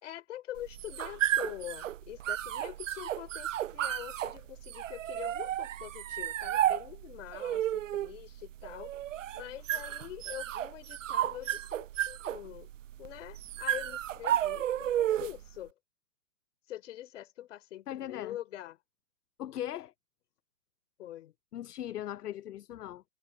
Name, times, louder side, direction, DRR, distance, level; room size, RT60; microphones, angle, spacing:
voice 1, 0.0-8.9 9.3-12.7 13.0-15.7 16.7-18.8 21.0-21.3, left 13 dB, 50° left, 3.1 m, -44 dB
sound 1, 0.6-15.5, right 12 dB, 55° right, 0.7 m, -33 dB
voice 2, 17.9-18.4 19.4-19.9 21.5-23.0, left 12 dB, 75° left, 0.6 m, -39 dB
hypercardioid pair, 130°, 46 cm